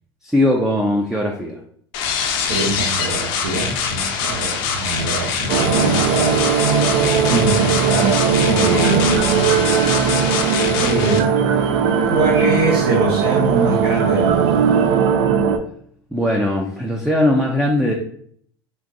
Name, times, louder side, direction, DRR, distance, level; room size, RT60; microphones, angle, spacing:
voice 1, 0.2-1.6 16.1-17.9, left 1 dB, 5° right, 0 dB, 0.4 m, -19 dB
sound 1, 1.9-11.2, left 6 dB, 60° left, 0.5 m, -24 dB
voice 2, 2.4-6.4 7.2-9.3 10.6-11.3 12.0-14.6, right 3 dB, 85° right, -4 dB, 0.9 m, -23 dB
sound 2, 5.5-15.6, right 6 dB, 65° right, 0.4 m, -18 dB
3.6 x 2.5 x 2.5 m, 0.62 s
hypercardioid pair, 95°, 13 cm